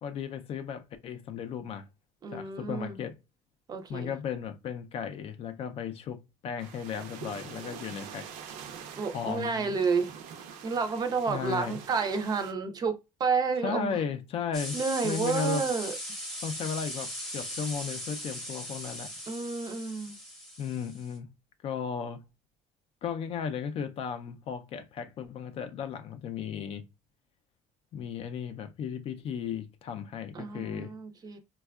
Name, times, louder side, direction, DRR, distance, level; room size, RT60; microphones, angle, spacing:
voice 1, 0.0-1.9 2.3-3.2 3.9-8.3 9.1-9.8 11.3-11.8 13.6-14.8 15.0-15.6 16.4-19.1 20.6-21.3 21.6-22.3 23.0-26.9 27.9-30.9, left 7 dB, 45° left, 0.4 m, -35 dB
voice 2, 2.2-3.0 3.7-4.1 9.0-10.1 10.6-14.0 14.7-15.9 19.3-20.2 30.3-31.4, right 5 dB, 30° right, 0.4 m, -30 dB
sound 1, 6.6-12.5, right 7 dB, 70° right, 0.6 m, -45 dB
sound 2, 14.5-21.2, equal, 5° left, 0.7 m, -39 dB
4.2 x 2.2 x 2.2 m
cardioid pair, 140°, 14 cm